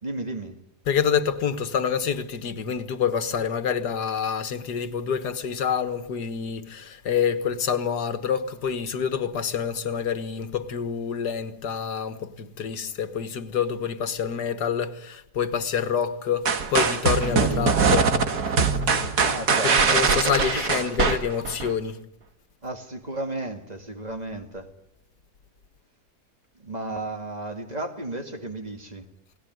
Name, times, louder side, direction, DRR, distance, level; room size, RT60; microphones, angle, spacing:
voice 1, 0.0-0.6 19.2-21.2 22.6-24.7 26.5-29.1, right 2 dB, 25° right, 2.2 m, -34 dB
voice 2, 0.9-18.1 19.6-22.1, left 7 dB, 85° left, 2.0 m, -27 dB
sound 1, 16.5-21.7, right 5 dB, 75° right, 2.2 m, -22 dB
29.0 x 19.0 x 9.4 m
omnidirectional pair, 1.7 m